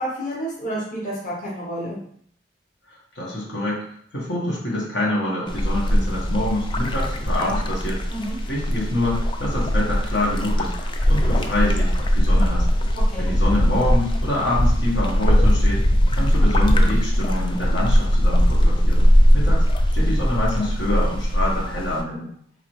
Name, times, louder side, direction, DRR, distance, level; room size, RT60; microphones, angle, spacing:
voice 1, 0.0-2.0 8.1-8.4 13.1-13.3, right 1 dB, 45° left, -5 dB, 1.0 m, -30 dB
voice 2, 2.9-3.8 4.1-8.0 8.5-12.7 13.2-15.8 16.2-19.0 19.3-19.6 19.9-22.3, left 1 dB, 80° left, -5 dB, 1.4 m, -26 dB
sound 1, 5.5-22.0, equal, 30° left, 0.4 m, -20 dB
3.9 x 2.8 x 3.1 m, 0.64 s
head